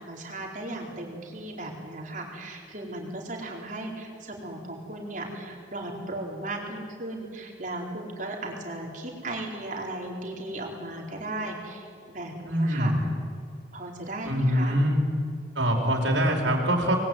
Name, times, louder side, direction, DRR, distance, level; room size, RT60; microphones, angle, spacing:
voice 1, 0.0-12.9 13.7-14.8, right 2 dB, 45° right, 0 dB, 4.5 m, -36 dB
voice 2, 12.5-13.0 14.3-15.0 15.6-17.0, equal, 80° right, 0 dB, 4.2 m, -23 dB
27.5 x 20.5 x 9.4 m, 2.4 s
head